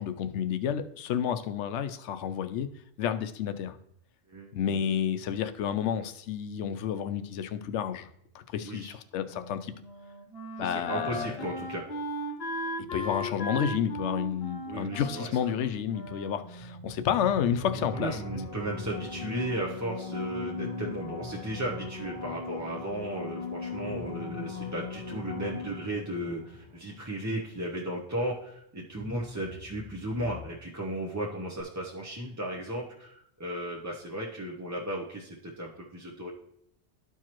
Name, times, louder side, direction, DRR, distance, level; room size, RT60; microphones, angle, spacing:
voice 1, 0.0-2.7 3.0-3.8 4.5-8.1 8.3-9.7 10.6-11.5 12.9-18.1, left 8 dB, 80° left, 10 dB, 0.9 m, -30 dB
voice 2, 4.3-4.8 8.6-8.9 10.6-11.9 14.7-15.3 17.9-36.3, right 1 dB, 20° right, -3 dB, 0.6 m, -35 dB
Wind instrument woodwind instrument, 9.3-17.1, equal, 60° left, 1.1 m, -37 dB
sound 1, 16.6-23.0 23.3-23.4 23.7-28.4 28.8-30.5, left 1 dB, 45° right, 1.3 m, -47 dB
sound 2, 17.6-26.3 31.6-31.7, left 5 dB, 35° left, 0.9 m, -39 dB
12.5 x 4.6 x 2.9 m, 0.73 s
omnidirectional pair, 1.2 m